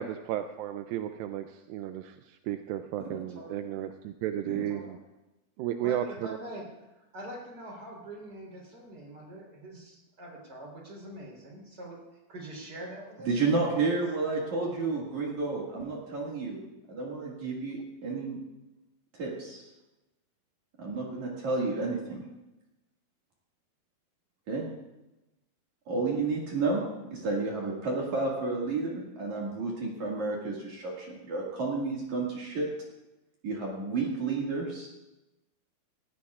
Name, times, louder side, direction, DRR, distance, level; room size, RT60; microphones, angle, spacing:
voice 1, 0.0-5.0 5.6-6.3, right 11 dB, 80° right, 7 dB, 2.1 m, -34 dB
voice 2, 3.3-3.8 4.7-5.0 5.8-12.0 12.3-13.3 13.9-14.7, right 1 dB, 25° right, -2 dB, 4.1 m, -44 dB
voice 3, 13.3-16.6 16.9-18.4 19.1-19.6 20.8-22.2 24.5-24.7 25.9-26.8 27.1-32.7 33.4-34.9, right 3 dB, 55° right, -3 dB, 3.1 m, -31 dB
18.5 x 16.0 x 2.4 m, 0.99 s
omnidirectional pair, 4.5 m